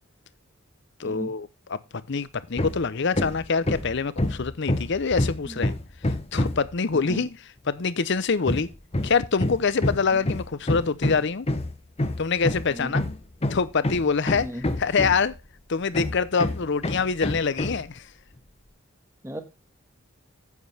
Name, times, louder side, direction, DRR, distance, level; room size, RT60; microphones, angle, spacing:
voice 1, 1.0-1.8 2.1-5.7 6.3-7.4 7.7-8.7 9.0-11.5 12.2-13.0 13.5-14.5 14.8-15.3 15.7-18.0, left 5 dB, 55° left, 0.7 m, -25 dB
Hammer, 2.6-2.9 3.1-6.7 8.5-15.4 15.9-17.9, left 1 dB, 30° left, 0.9 m, -27 dB
voice 2, 6.9-7.2 10.1-10.3 12.7-12.9 14.4-14.6 19.2-19.4, right 1 dB, 15° right, 1.4 m, -36 dB
9.5 x 8.1 x 3.3 m
head